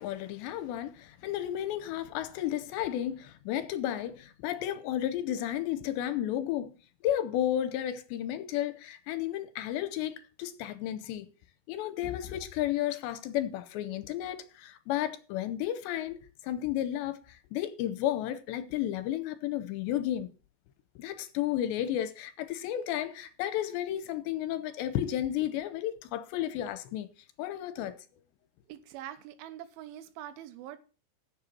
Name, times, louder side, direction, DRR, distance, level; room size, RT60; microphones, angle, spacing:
voice 1, 0.0-6.7 7.0-11.3 11.7-16.2 16.4-20.3 21.0-27.1 27.4-28.0, left 12 dB, 80° left, 2.8 m, -33 dB
voice 2, 28.7-30.8, right 12 dB, 85° right, 3.4 m, -44 dB
8.0 x 7.3 x 7.4 m
omnidirectional pair, 5.4 m